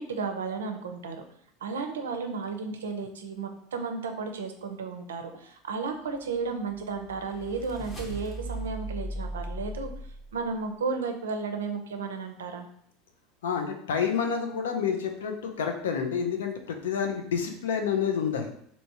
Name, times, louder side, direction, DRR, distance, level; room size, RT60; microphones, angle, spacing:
voice 1, 0.1-1.2 1.6-9.9 10.3-12.7, right 4 dB, 85° right, 5 dB, 0.4 m, -33 dB
sound 1, 6.4-10.7, right 1 dB, 30° left, 0.9 m, -38 dB
voice 2, 13.4-18.5, left 7 dB, 80° left, 4 dB, 0.5 m, -29 dB
3.4 x 2.7 x 2.8 m, 0.65 s
hypercardioid pair, 85°, 0 cm